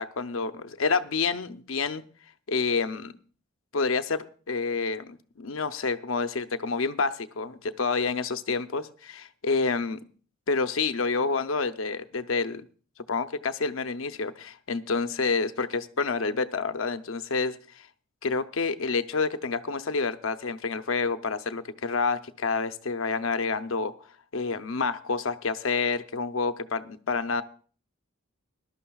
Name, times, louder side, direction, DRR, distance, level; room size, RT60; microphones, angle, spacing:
voice 1, 0.0-2.0 2.5-3.1 3.7-10.0 10.5-12.7 13.1-17.9 18.2-23.9 24.3-27.4, left 4 dB, 65° left, 10 dB, 0.7 m, -28 dB
20.0 x 12.0 x 2.3 m, 0.42 s
head